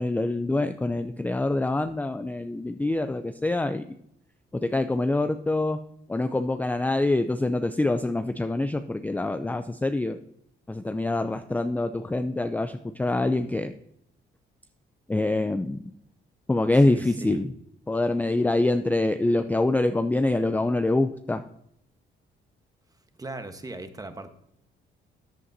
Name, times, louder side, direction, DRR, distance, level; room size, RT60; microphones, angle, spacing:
voice 1, 0.0-3.8 4.5-5.8 6.1-10.2 10.7-13.7 15.1-15.8 16.5-17.5 17.9-21.4, left 2 dB, 10° left, 9 dB, 0.4 m, -25 dB
voice 2, 16.8-17.4 23.1-24.3, right 2 dB, 20° right, 8 dB, 1.1 m, -38 dB
13.0 x 8.3 x 2.7 m, 0.75 s
cardioid pair, 90°, 20 cm